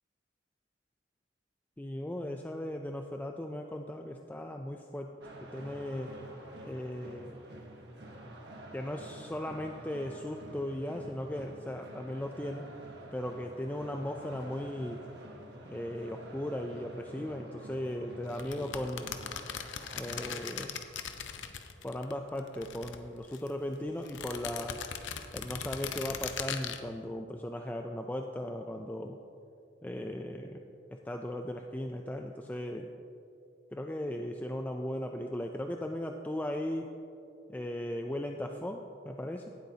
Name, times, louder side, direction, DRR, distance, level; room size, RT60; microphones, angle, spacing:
voice 1, 1.8-6.1 6.6-7.4 8.7-12.7 13.1-15.0 15.7-19.1 19.9-20.8 21.8-24.8 25.3-29.2 29.8-30.6 30.9-32.9 33.7-36.9 37.5-39.5, left 1 dB, 10° left, 3 dB, 0.3 m, -37 dB
sound 1, 5.2-20.4, right 1 dB, 65° right, 1.4 m, -48 dB
sound 2, 18.3-22.1 22.4-23.5 24.0-26.8, left 8 dB, 85° left, 0.7 m, -39 dB
17.5 x 8.1 x 2.8 m, 2.6 s
head